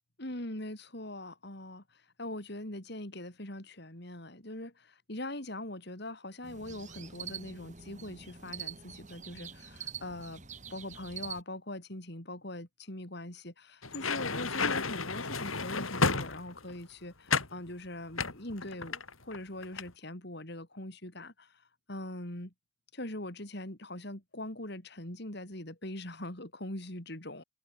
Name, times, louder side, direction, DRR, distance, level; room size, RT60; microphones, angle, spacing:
voice 1, 0.2-10.4 10.7-22.5 22.9-27.4, left 1 dB, 55° left, 3.9 m, -42 dB
sound 1, 6.4-11.4, right 7 dB, 35° right, 6.7 m, -45 dB
sound 2, 13.8-16.8 17.3-17.6 18.2-19.4 19.6-19.9, left 4 dB, 85° left, 5.4 m, -32 dB
head